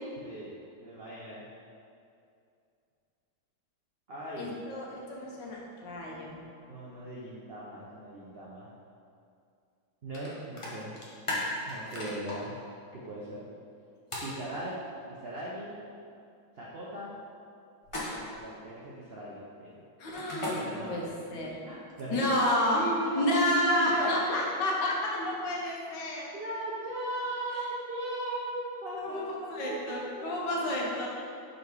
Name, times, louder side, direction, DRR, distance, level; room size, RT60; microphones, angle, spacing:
voice 1, 0.2-1.4 4.1-4.6 6.7-8.7 10.0-10.9 11.7-12.6 12.9-13.4 14.2-14.7 15.2-15.8 16.6-17.2 17.9-19.8 20.5-21.1 21.6-22.3 22.7-24.1 26.3-31.1, right 1 dB, 70° right, -6 dB, 0.5 m, -38 dB
voice 2, 4.4-6.4 20.0-21.0 21.3-21.6 22.1-22.8 23.1-26.3 29.0-29.2 29.5-31.1, left 1 dB, 70° left, -3 dB, 1.5 m, -30 dB
sound 1, 10.1-10.3 10.6-12.4 14.1-14.3 17.8-18.4 20.1-20.5 21.9-22.8, left 2 dB, 35° left, 0.5 m, -36 dB
5.1 x 4.0 x 4.7 m, 2.5 s
omnidirectional pair, 2.1 m